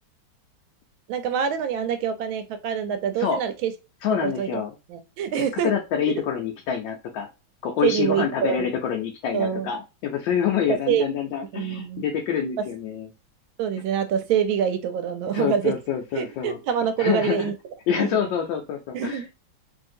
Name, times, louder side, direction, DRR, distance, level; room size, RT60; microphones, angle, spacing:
voice 1, 1.1-3.7 4.2-4.6 4.9-5.7 7.8-8.7 9.3-9.7 10.9-11.1 11.5-12.0 13.6-15.7 16.1-17.5 17.9-18.2 18.9-19.3, right 8 dB, 80° right, 8 dB, 1.4 m, -25 dB
voice 2, 4.0-4.7 5.6-7.3 7.6-13.1 15.3-16.6 17.0-17.5 17.9-19.3, left 8 dB, 75° left, 1 dB, 1.2 m, -26 dB
3.2 x 2.8 x 2.5 m, 0.27 s
omnidirectional pair, 2.2 m